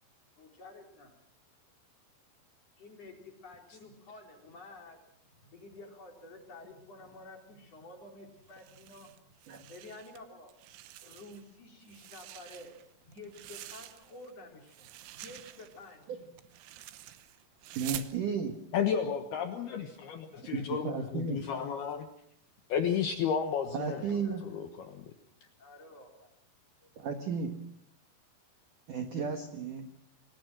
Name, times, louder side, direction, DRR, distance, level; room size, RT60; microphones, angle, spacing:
voice 1, 0.4-1.2 2.8-9.3 9.6-10.5 11.0-12.7 13.0-16.0 20.3-20.6 21.0-21.1 23.6-24.4 25.6-26.4 26.8-26.9, left 2 dB, 35° left, 2 dB, 4.5 m, -51 dB
sound 1, 8.5-10.2 10.5-11.5 11.8-14.3 14.6-18.2, right 15 dB, 85° right, 3.7 m, -47 dB
voice 2, 17.8-18.6 20.4-21.4 23.7-24.5 27.0-27.5 28.9-29.9, right 5 dB, 65° right, 5 dB, 2.1 m, -34 dB
voice 3, 18.7-22.1 22.7-24.0 24.4-25.0, left 7 dB, 65° left, 6 dB, 2.7 m, -32 dB
28.0 x 20.0 x 6.2 m, 0.70 s
omnidirectional pair, 5.7 m